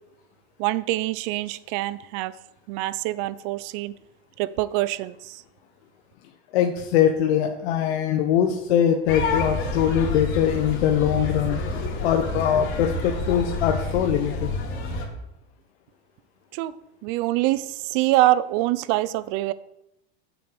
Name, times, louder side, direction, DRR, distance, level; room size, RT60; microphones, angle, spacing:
voice 1, 0.6-2.3 2.7-3.9 4.4-5.1 16.5-16.7 17.0-17.6 17.9-19.5, right 16 dB, 55° right, 18 dB, 0.7 m, -24 dB
voice 2, 6.5-11.6 12.0-14.5, left 9 dB, 75° left, 4 dB, 1.2 m, -22 dB
sound 1, 9.1-15.0, left 2 dB, 40° left, 3.1 m, -28 dB
8.0 x 7.8 x 7.0 m, 0.84 s
supercardioid pair, 130°, 33 cm